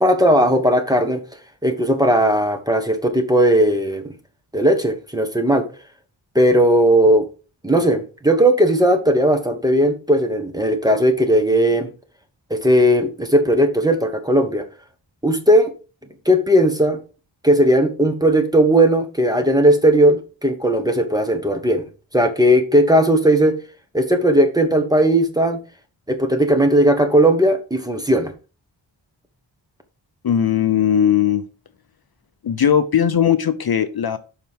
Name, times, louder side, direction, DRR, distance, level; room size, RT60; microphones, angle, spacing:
voice 1, 0.0-1.2 1.6-4.1 4.5-5.6 6.3-7.2 7.6-11.9 12.5-14.6 15.2-15.7 16.2-17.0 17.4-21.8 22.1-23.6 23.9-25.6 26.1-28.3, right 1 dB, 10° right, 6 dB, 1.2 m, -17 dB
voice 2, 30.2-31.4 32.4-34.2, left 9 dB, 55° left, 10 dB, 0.6 m, -18 dB
7.3 x 5.7 x 3.6 m, 0.35 s
wide cardioid pair, 115°, 46 cm